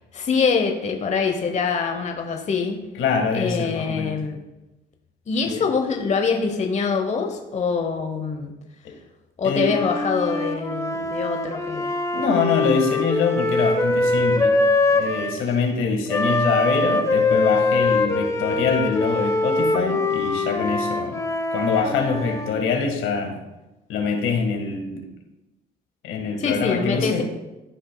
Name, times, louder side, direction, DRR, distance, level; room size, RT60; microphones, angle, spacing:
voice 1, 0.1-2.8 3.3-4.4 5.3-8.5 9.4-11.9 26.4-27.2, left 5 dB, 35° left, 4 dB, 0.9 m, -24 dB
voice 2, 2.9-4.2 5.5-5.7 8.8-8.9 9.4-9.8 12.1-14.6 14.9-21.2 21.5-23.4 23.9-25.0 26.0-27.2, left 5 dB, 70° left, 3 dB, 1.6 m, -24 dB
Wind instrument woodwind instrument, 9.6-15.4 16.1-22.6, left 2 dB, 15° left, 1.1 m, -23 dB
14.0 x 5.1 x 2.2 m, 1.0 s
supercardioid pair, 85°, 21 cm